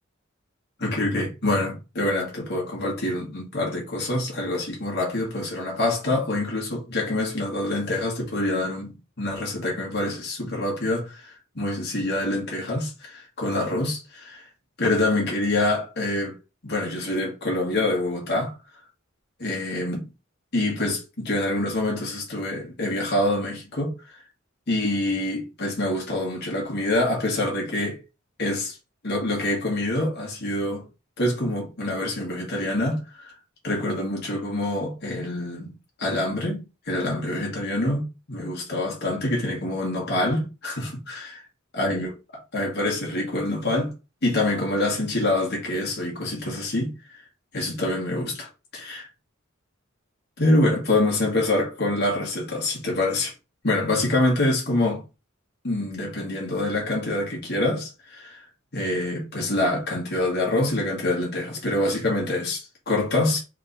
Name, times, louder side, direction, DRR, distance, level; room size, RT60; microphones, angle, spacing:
voice 1, 0.8-14.5 14.8-16.3 16.6-18.5 19.4-20.1 20.5-24.2 24.7-28.0 28.4-28.8 29.0-30.9 31.2-33.3 33.6-35.7 36.0-41.4 41.7-42.1 42.5-43.9 44.2-47.2 47.5-49.1 50.4-53.3 53.6-55.0 55.6-58.4 58.7-63.4, left 1 dB, 55° left, 1.8 m, -26 dB
3.7 x 3.2 x 4.0 m
head